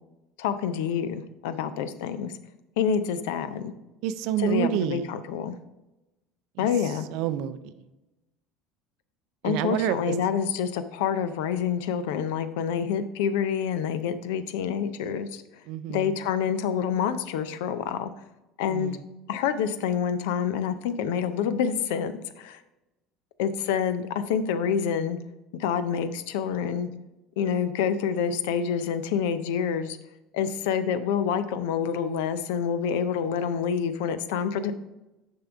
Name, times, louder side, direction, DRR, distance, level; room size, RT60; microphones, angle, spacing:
voice 1, 0.4-2.3 2.8-3.7 4.4-5.6 6.6-7.1 9.4-15.4 15.9-18.1 18.6-19.0 19.3-22.6 23.4-25.2 25.5-26.9 27.4-30.0 30.3-34.7, left 7 dB, 75° left, 12 dB, 0.5 m, -27 dB
voice 2, 4.0-5.1 6.6-7.7 9.4-10.1 15.7-16.1 18.7-19.0, right 10 dB, 65° right, 13 dB, 0.4 m, -29 dB
6.6 x 5.3 x 3.5 m, 1.0 s
hypercardioid pair, 75°, 0 cm